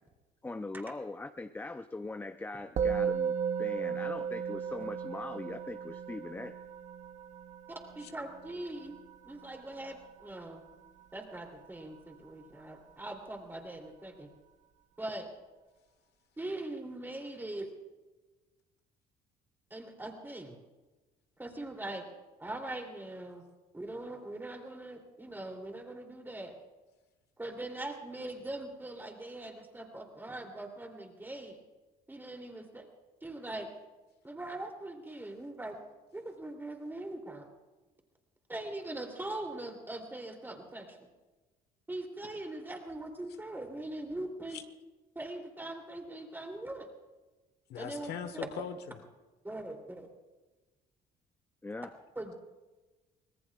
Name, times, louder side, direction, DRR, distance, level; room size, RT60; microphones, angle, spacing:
voice 1, 0.4-6.5 51.6-51.9, left 2 dB, 10° left, 0.6 m, -41 dB
Musical instrument, 2.8-12.3, right 7 dB, 45° right, 0.8 m, -36 dB
voice 2, 7.9-9.0 9.2-10.6 11.1-14.3 15.0-15.3 16.4-17.7 19.7-20.6 21.4-22.1 22.4-23.4 23.7-26.6 27.4-31.6 32.1-32.9 33.2-33.7 34.2-35.8 36.1-37.5 38.5-41.1 41.9-44.6 45.1-46.9 47.8-48.4 49.4-50.1 52.1-52.3, right 1 dB, 10° right, 3.0 m, -41 dB
voice 3, 47.7-49.0, left 8 dB, 75° left, 1.3 m, -40 dB
25.0 x 19.0 x 2.4 m
cardioid pair, 110°, 17 cm